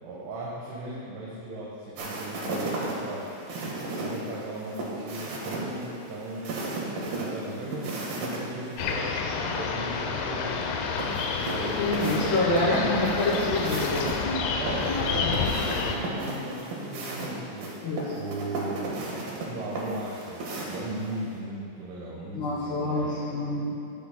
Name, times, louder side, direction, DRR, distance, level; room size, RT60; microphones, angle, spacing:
voice 1, 0.0-3.3 3.9-6.6 7.1-10.8 11.5-12.8 14.6-17.7 18.1-19.1 19.3-23.3, right 2 dB, 80° right, -6 dB, 3.7 m, -37 dB
sound 1, 2.0-8.4 8.7-8.8 11.0-14.1 14.7-21.1, right 2 dB, 60° right, 2.8 m, -34 dB
sound 2, 8.8-16.0, left 5 dB, 85° left, 2.2 m, -29 dB
voice 2, 11.8-15.4 17.8-18.1 22.3-23.7, left 2 dB, 60° left, -13 dB, 4.4 m, -27 dB
16.0 x 9.9 x 2.2 m, 2.8 s
omnidirectional pair, 5.6 m